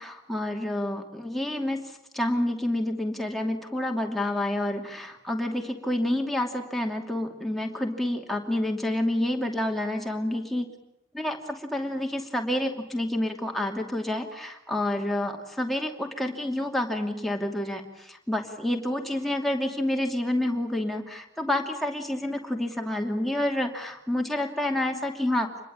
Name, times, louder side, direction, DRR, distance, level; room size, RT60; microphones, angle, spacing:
voice 1, 0.0-10.7 11.1-25.5, left 1 dB, ahead, 2 dB, 2.6 m, -29 dB
26.5 x 21.5 x 8.9 m, 0.83 s
head